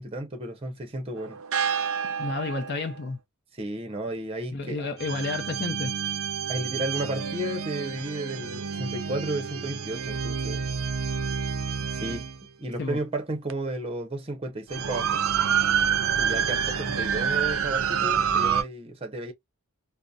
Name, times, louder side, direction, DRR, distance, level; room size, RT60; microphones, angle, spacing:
voice 1, 0.0-1.4 3.5-4.9 6.5-10.7 11.8-12.3 12.6-15.2 16.2-19.3, right 1 dB, 25° right, 0.6 m, -33 dB
sound 1, 1.2-3.0 5.0-12.4 13.5-13.6 14.7-18.6, right 7 dB, 65° right, 0.4 m, -28 dB
voice 2, 2.2-3.2 4.5-5.9 12.8-13.0, left 3 dB, 50° left, 0.5 m, -31 dB
2.6 x 2.0 x 2.3 m
head